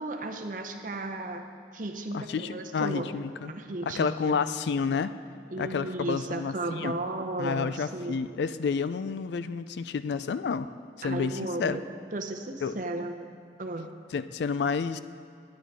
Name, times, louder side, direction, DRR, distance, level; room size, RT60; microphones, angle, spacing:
voice 1, 0.0-1.5 1.7-3.1 3.5-4.4 5.5-8.2 11.0-11.9 12.1-13.2 13.6-13.9, right 2 dB, 45° right, 5 dB, 0.7 m, -34 dB
voice 2, 2.1-3.5 3.9-5.1 5.6-6.9 7.4-10.7 11.0-11.8 12.6-12.8 14.1-15.0, left 5 dB, 65° left, 13 dB, 0.3 m, -30 dB
10.0 x 9.4 x 4.8 m, 2.3 s
head